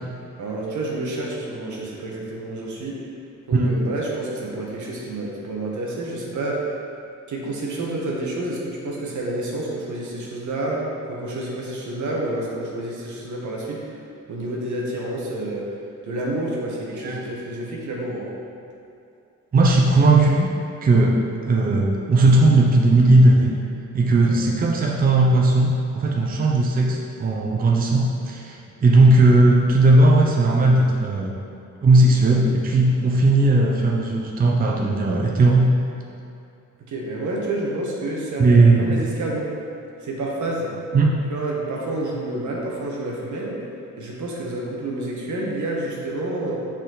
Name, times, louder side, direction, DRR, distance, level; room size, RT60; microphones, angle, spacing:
voice 1, 0.4-3.0 3.5-6.7 7.3-13.9 14.3-15.7 16.0-18.3 24.3-24.4 36.8-39.5 40.0-40.7 41.3-43.7 44.0-46.5, right 2 dB, 80° right, -3 dB, 1.3 m, -29 dB
voice 2, 19.5-20.5 20.8-21.2 21.5-23.5 23.9-31.3 31.8-35.7 38.4-39.0 40.9-41.1, right 2 dB, 30° right, -2 dB, 0.6 m, -17 dB
7.6 x 4.3 x 3.9 m, 2.6 s
wide cardioid pair, 155°, 30 cm